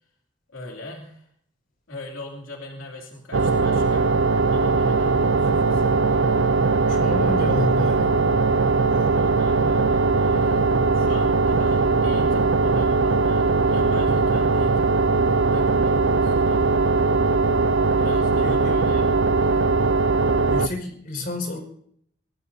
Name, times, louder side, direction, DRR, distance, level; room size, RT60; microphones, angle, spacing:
voice 1, 0.5-1.2 1.9-4.0 4.5-5.9 8.9-17.0 17.8-19.5 20.2-20.5, left 2 dB, 85° left, 0 dB, 2.9 m, -41 dB
sound 1, 3.3-20.7, right 3 dB, 65° right, 0.6 m, -20 dB
voice 2, 6.9-8.2 18.4-18.6 20.5-21.6, left 2 dB, 45° left, 3 dB, 5.3 m, -29 dB
25.5 x 18.5 x 2.8 m, 0.66 s
head